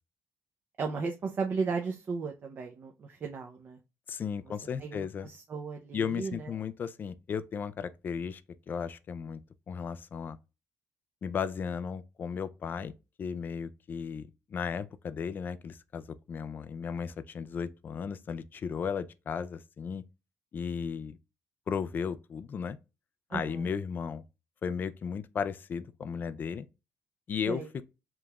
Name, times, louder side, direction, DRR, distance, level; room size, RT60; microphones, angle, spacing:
voice 1, 0.8-3.8 4.8-6.5 23.3-23.7 27.5-27.7, right 4 dB, 40° right, 0.6 m, -35 dB
voice 2, 4.1-5.3 5.9-8.4 8.7-9.4 9.7-10.4 11.2-12.9 13.2-20.1 20.5-21.2 21.7-22.8 23.3-24.2 24.6-26.7 27.3-27.6, left 6 dB, 35° left, 0.3 m, -35 dB
5.0 x 3.0 x 2.3 m
cardioid pair, 160°, 6 cm